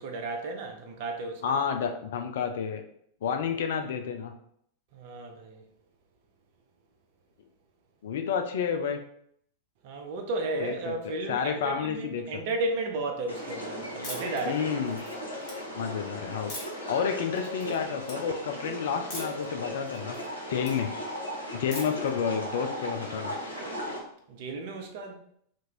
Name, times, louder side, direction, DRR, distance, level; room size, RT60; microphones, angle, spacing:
voice 1, 0.0-1.4 4.9-5.6 9.8-14.6 24.3-25.1, right 2 dB, 50° right, 0.7 m, -33 dB
voice 2, 1.4-2.8 3.2-4.3 8.0-9.0 10.6-10.9 11.3-12.2 14.4-15.0 15.7-16.5 16.9-20.2 20.5-20.9 21.5-23.3, left 7 dB, 55° left, 0.4 m, -30 dB
sound 1, 13.3-24.0, equal, 85° left, 0.9 m, -37 dB
sound 2, 14.0-14.4 14.9-15.5 16.5-16.9 17.4-17.8 18.0-18.2 19.1-19.5 19.8-20.7 21.7-22.1, left 2 dB, 40° left, 1.4 m, -41 dB
3.0 x 2.5 x 4.3 m
figure-of-eight pair, 90°, 0 cm